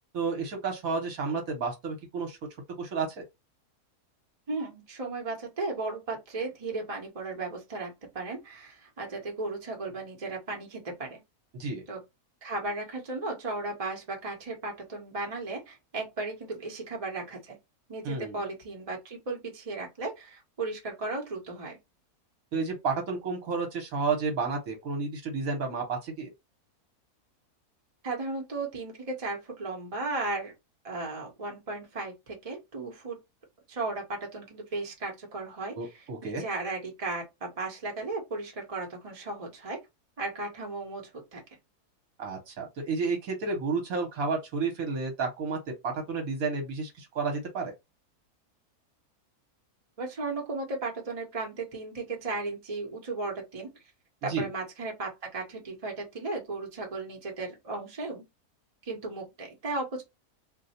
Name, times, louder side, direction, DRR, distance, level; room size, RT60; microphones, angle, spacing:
voice 1, 0.1-2.4 2.8-3.2 11.5-11.8 18.0-18.4 22.5-26.3 35.8-36.4 42.2-45.6 45.8-47.7 54.2-54.5, right 4 dB, 65° right, 1.4 m, -31 dB
voice 2, 4.5-11.2 11.9-12.0 12.4-17.6 17.9-21.8 28.0-30.5 30.8-33.2 33.7-39.8 40.2-41.4 50.0-53.7 54.2-58.2 58.9-60.0, right 3 dB, 30° right, 0.9 m, -35 dB
2.7 x 2.2 x 4.1 m
omnidirectional pair, 1.6 m